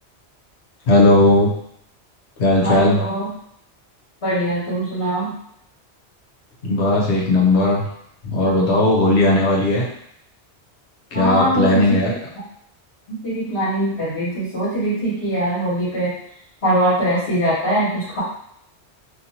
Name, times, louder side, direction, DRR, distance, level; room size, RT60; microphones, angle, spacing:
voice 1, 0.9-1.5 2.4-3.0 6.6-7.9 8.2-9.9 11.1-12.1, left 2 dB, 75° left, -3 dB, 1.0 m, -16 dB
voice 2, 2.6-3.3 4.2-5.3 11.1-12.0 13.1-16.1 16.6-18.2, right 1 dB, 55° left, -11 dB, 1.5 m, -22 dB
2.8 x 2.6 x 2.8 m, 0.72 s
omnidirectional pair, 1.1 m